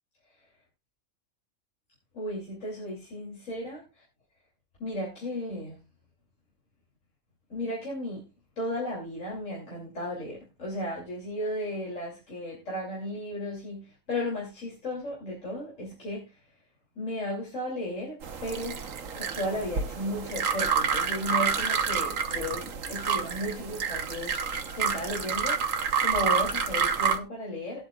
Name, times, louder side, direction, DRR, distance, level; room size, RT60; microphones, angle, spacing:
voice 1, 2.1-4.0 4.8-5.8 7.5-8.2 8.6-16.4 16.9-18.8 19.1-25.7 26.0-27.9, left 1 dB, 60° left, 3.5 m, -35 dB
sound 1, 18.2-27.2, right 6 dB, 70° right, 1.4 m, -28 dB
19.0 x 8.1 x 2.4 m
omnidirectional pair, 1.4 m